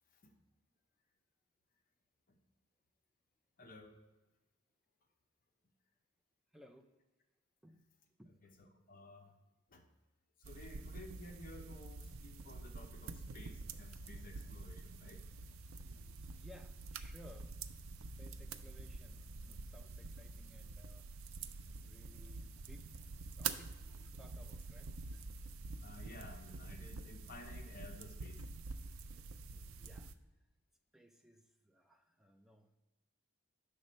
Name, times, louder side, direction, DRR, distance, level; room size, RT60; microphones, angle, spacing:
voice 1, 3.6-4.0 8.4-8.5 8.9-9.3 9.7-9.8 10.4-15.2 25.8-28.4, left 1 dB, 40° left, 4 dB, 0.7 m, -54 dB
voice 2, 6.5-6.9 7.6-7.8 8.2-8.5 15.8-17.6 17.9-23.0 23.4-25.3 29.1-30.1 30.9-32.8, left 1 dB, ahead, 4 dB, 0.4 m, -62 dB
sound 1, 10.4-30.1, right 4 dB, 75° right, 0.4 m, -47 dB
sound 2, 13.3-28.0, left 6 dB, 70° left, 0.4 m, -68 dB
6.7 x 6.1 x 4.2 m, 1.1 s
head